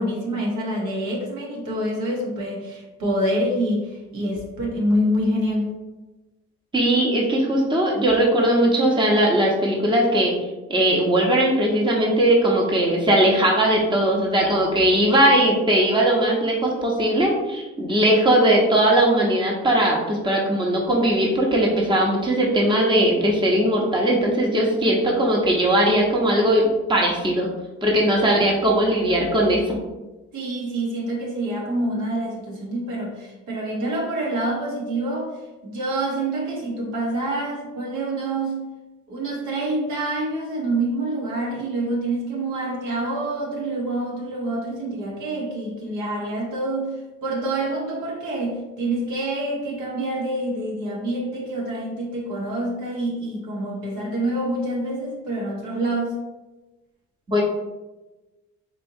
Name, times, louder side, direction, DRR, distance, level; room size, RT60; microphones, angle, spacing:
voice 1, 0.0-5.7 30.3-35.4 35.6-38.6 39.1-46.9 47.2-56.2, right 1 dB, 80° right, -2 dB, 1.1 m, -26 dB
voice 2, 6.7-10.3 10.7-27.5 27.8-29.8 57.3-57.4, right 1 dB, 15° right, -2 dB, 0.9 m, -19 dB
4.3 x 2.7 x 2.7 m, 1.1 s
cardioid pair, 90°, 30 cm